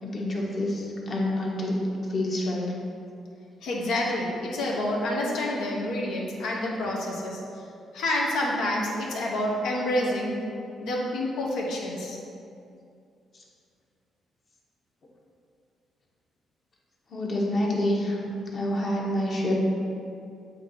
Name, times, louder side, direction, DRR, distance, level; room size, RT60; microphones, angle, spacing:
voice 1, 0.0-1.7 2.1-2.7 17.1-18.2 18.5-19.5, left 1 dB, 45° left, -3 dB, 1.2 m, -27 dB
voice 2, 3.6-7.4 7.9-10.3 10.8-12.2, left 1 dB, 85° left, -2 dB, 1.1 m, -28 dB
7.8 x 2.9 x 4.4 m, 2.5 s
cardioid pair, 90°, 0 cm